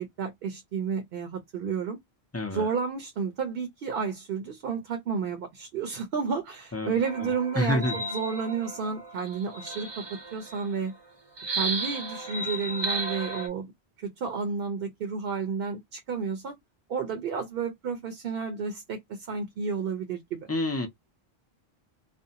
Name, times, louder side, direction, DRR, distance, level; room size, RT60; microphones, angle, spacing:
voice 1, 0.0-2.0 2.5-10.0 10.3-10.9 11.5-13.7 14.0-16.6 16.9-20.5, right 5 dB, 65° right, 0.8 m, -31 dB
voice 2, 2.3-2.7 6.7-6.9 7.2-7.3 7.6-7.9 20.5-20.9, left 1 dB, 25° left, 0.3 m, -27 dB
sound 1, 7.0-10.8 11.4-13.5, right 2 dB, 30° right, 0.7 m, -34 dB
2.5 x 2.1 x 2.7 m
omnidirectional pair, 1.1 m